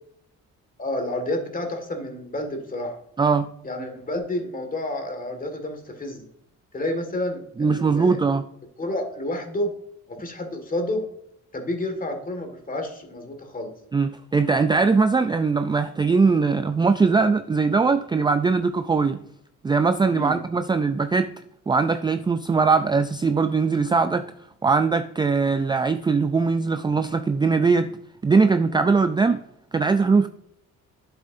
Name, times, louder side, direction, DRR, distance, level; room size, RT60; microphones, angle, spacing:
voice 1, 0.8-3.0 3.6-6.3 6.7-8.2 8.8-9.7 10.1-11.1 11.5-13.7 20.1-20.4, left 1 dB, 30° left, 5 dB, 1.9 m, -30 dB
voice 2, 3.2-3.5 7.6-8.5 13.9-19.2 19.6-21.3 21.7-24.3 24.6-27.9 28.2-29.4 29.7-30.3, right 4 dB, 15° right, 10 dB, 0.3 m, -21 dB
8.5 x 7.7 x 2.6 m, 0.74 s
cardioid pair, 90°, 30 cm